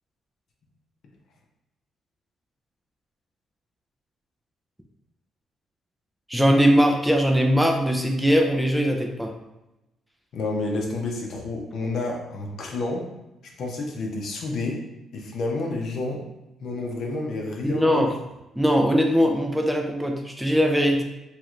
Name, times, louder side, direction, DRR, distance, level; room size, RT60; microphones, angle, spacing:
voice 1, 6.3-9.3 17.6-18.1 18.6-21.0, equal, 5° right, 2 dB, 0.4 m, -20 dB
voice 2, 10.3-13.0 13.6-14.8 15.1-16.2 16.6-18.0, left 2 dB, 65° left, 0 dB, 0.7 m, -29 dB
3.1 x 3.0 x 2.4 m, 0.95 s
cardioid pair, 90°, 0 cm